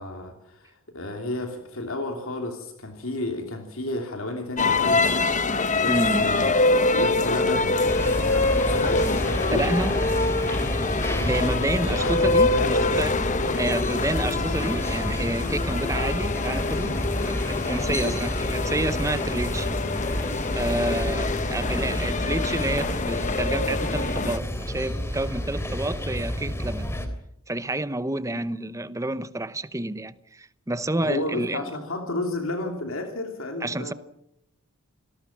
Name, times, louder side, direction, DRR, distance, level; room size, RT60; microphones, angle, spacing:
voice 1, 0.0-5.1 5.7-6.5 6.9-9.8 11.1-13.0 13.5-13.7 17.8-18.1 28.3-28.4 31.0-33.9, left 2 dB, 65° left, 2.9 m, -32 dB
sound 1, 4.6-24.4, left 3 dB, 35° left, 1.0 m, -25 dB
voice 2, 5.9-6.3 9.5-9.9 11.0-13.2 13.6-17.0 17.3-19.8 20.5-26.9 27.5-31.6 33.6-33.9, right 1 dB, 15° right, 0.8 m, -29 dB
sound 2, 7.9-27.1, equal, 10° left, 3.0 m, -30 dB
27.5 x 19.0 x 7.3 m
head